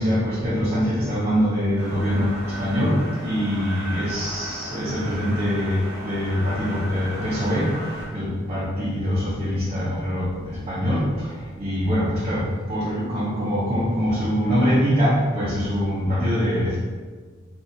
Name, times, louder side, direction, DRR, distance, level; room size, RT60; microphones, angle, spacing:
voice 1, 0.0-7.7 8.1-11.3 11.6-16.8, equal, 30° right, -8 dB, 0.6 m, -23 dB
sound 1, 1.8-8.1, right 1 dB, 80° right, 0.8 m, -36 dB
3.9 x 2.4 x 2.5 m, 1.5 s
head